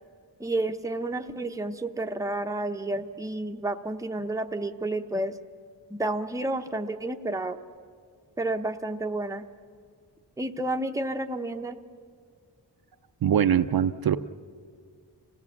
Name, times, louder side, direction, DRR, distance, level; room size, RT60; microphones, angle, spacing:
voice 1, 0.4-5.4 5.9-7.6 8.4-9.5 10.4-11.8, right 2 dB, 10° right, 5 dB, 0.7 m, -30 dB
voice 2, 13.2-14.2, right 9 dB, 60° right, 10 dB, 0.5 m, -22 dB
27.5 x 17.0 x 7.2 m, 2.1 s
wide cardioid pair, 150°, 42 cm